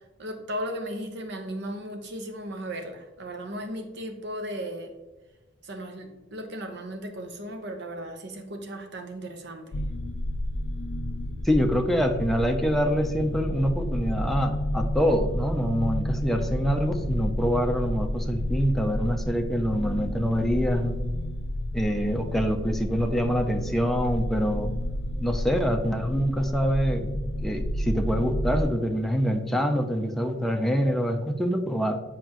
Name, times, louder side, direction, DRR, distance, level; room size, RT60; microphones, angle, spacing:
voice 1, 0.2-4.9 5.6-9.7, equal, 60° right, 5 dB, 0.9 m, -36 dB
sound 1, 9.7-28.6, equal, 75° left, 0.5 m, -30 dB
voice 2, 11.4-21.0 21.7-24.7 25.2-27.1 27.4-32.0, equal, ahead, 3 dB, 0.6 m, -25 dB
7.6 x 5.0 x 3.0 m, 1.1 s
head